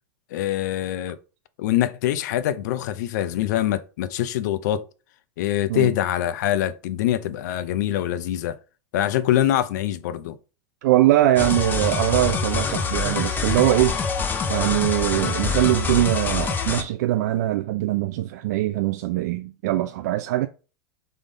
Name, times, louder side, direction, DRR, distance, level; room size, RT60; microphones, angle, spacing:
voice 1, 0.3-1.2 1.6-4.8 5.4-8.6 8.9-10.4, left 12 dB, 70° left, 0.5 m, -24 dB
voice 2, 10.8-14.0 14.5-20.5, right 15 dB, 65° right, 0.3 m, -22 dB
sound 1, 11.4-16.8, left 5 dB, 20° left, 0.6 m, -25 dB
3.7 x 3.5 x 3.9 m
supercardioid pair, 135°, 10 cm